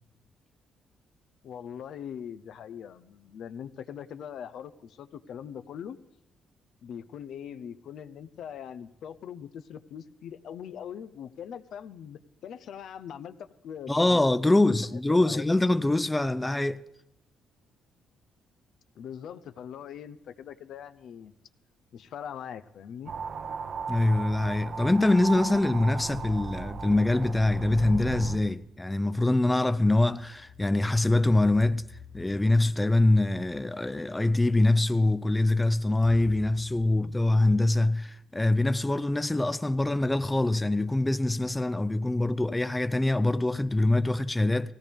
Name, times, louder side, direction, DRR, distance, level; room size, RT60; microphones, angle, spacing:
voice 1, 1.4-6.0 6.8-14.6 14.9-15.4 19.0-21.3 21.9-23.1, left 8 dB, 70° left, 0.7 m, -42 dB
voice 2, 13.9-16.8 23.9-31.9 32.1-44.7, left 2 dB, 15° left, 0.4 m, -24 dB
sound 1, 23.1-28.4, right 5 dB, 55° right, 0.8 m, -36 dB
sound 2, 24.3-25.2 25.8-28.1 29.3-33.7 34.6-34.7 36.0-37.9, left 9 dB, 50° left, 0.9 m, -52 dB
18.0 x 16.5 x 3.5 m
cardioid pair, 90°, 0 cm